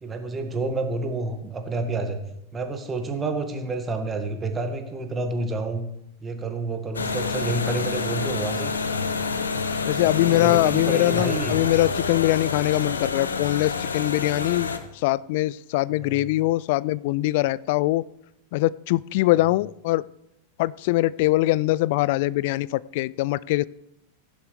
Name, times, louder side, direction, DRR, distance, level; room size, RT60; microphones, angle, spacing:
voice 1, 0.0-2.2 2.5-5.8 6.2-8.7 10.0-11.7 16.0-16.3, right 3 dB, 20° right, 6 dB, 1.9 m, -29 dB
sound 1, 6.9-14.8, left 4 dB, 70° left, 1.0 m, -28 dB
voice 2, 9.9-14.7 14.9-18.0 18.5-20.0 20.6-23.7, left 18 dB, 50° left, 21 dB, 0.3 m, -22 dB
16.0 x 11.5 x 3.4 m, 0.82 s
figure-of-eight pair, 90°, 0 cm